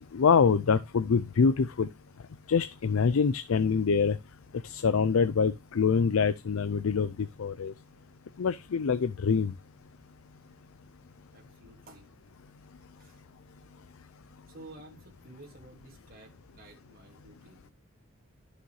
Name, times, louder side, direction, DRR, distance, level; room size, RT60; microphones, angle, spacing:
voice 1, 0.1-1.9 2.5-4.2 4.6-7.1 7.4-7.7 8.4-9.5, left 5 dB, 85° left, 0.5 m, -25 dB
voice 2, 11.3-12.1 13.0-13.2 14.5-17.7, right 2 dB, 45° right, 2.3 m, -52 dB
11.0 x 6.5 x 3.2 m
head